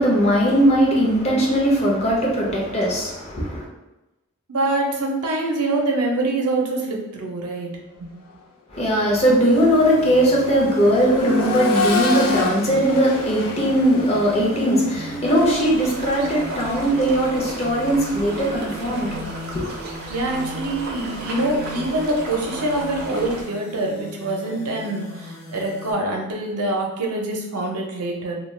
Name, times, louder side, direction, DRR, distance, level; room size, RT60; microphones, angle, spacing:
voice 1, 0.0-3.7 8.7-19.3 19.5-19.8, equal, 30° left, -3 dB, 0.6 m, -19 dB
voice 2, 4.5-7.7 8.0-8.1 20.1-28.4, right 2 dB, 90° right, 0 dB, 0.6 m, -25 dB
Accelerating revving vroom, 8.1-8.3 8.7-18.6 20.3-20.4, left 3 dB, 90° left, 0.5 m, -30 dB
sound 1, 9.4-25.9, left 1 dB, 60° left, 0.8 m, -39 dB
sound 2, 15.2-23.4, right 1 dB, 45° right, 0.5 m, -34 dB
2.3 x 2.3 x 3.2 m, 1.0 s
head